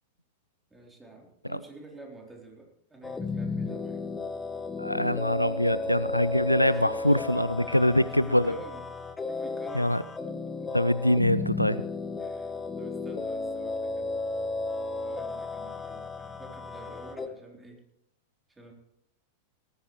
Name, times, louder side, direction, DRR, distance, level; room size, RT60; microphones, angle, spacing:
voice 1, 0.7-4.1 6.7-8.8 9.2-10.0 10.3-10.7 12.2-14.1 15.0-17.8 18.5-18.7, right 2 dB, 10° right, 0 dB, 3.6 m, -48 dB
sound 1, 3.0-17.3, left 3 dB, 15° left, 1.1 m, -34 dB
voice 2, 4.8-8.6 9.7-10.0 10.7-11.8, left 1 dB, 90° left, 17 dB, 0.4 m, -24 dB
18.5 x 14.5 x 3.2 m, 0.78 s
figure-of-eight pair, 90°, 0 cm